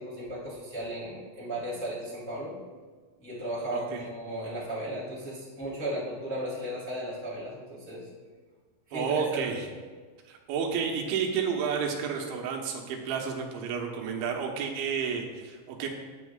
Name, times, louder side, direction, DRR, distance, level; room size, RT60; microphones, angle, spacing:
voice 1, 0.0-2.6 3.2-8.0 8.9-9.6, right 1 dB, 5° left, -7 dB, 1.9 m, -35 dB
voice 2, 3.7-4.0 8.9-9.7 10.3-15.9, right 6 dB, 85° right, 1 dB, 3.5 m, -31 dB
17.0 x 9.0 x 2.4 m, 1.5 s
omnidirectional pair, 5.2 m